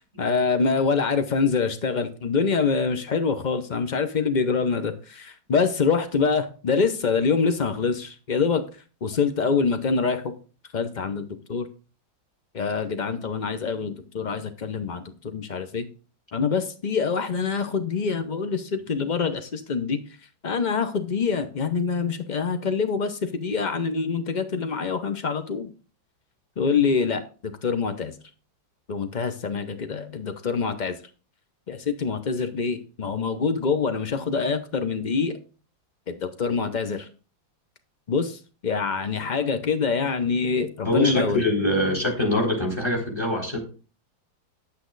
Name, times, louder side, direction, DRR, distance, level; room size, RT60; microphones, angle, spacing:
voice 1, 0.2-8.6 9.0-10.3 10.7-11.7 12.5-15.9 16.3-20.0 20.4-25.7 26.6-28.2 28.9-30.9 31.7-35.4 36.1-37.1 38.1-41.4, left 5 dB, 65° left, 9 dB, 0.4 m, -25 dB
voice 2, 40.8-43.6, left 1 dB, 15° left, 1 dB, 3.9 m, -24 dB
10.0 x 8.4 x 3.9 m, 0.35 s
omnidirectional pair, 2.1 m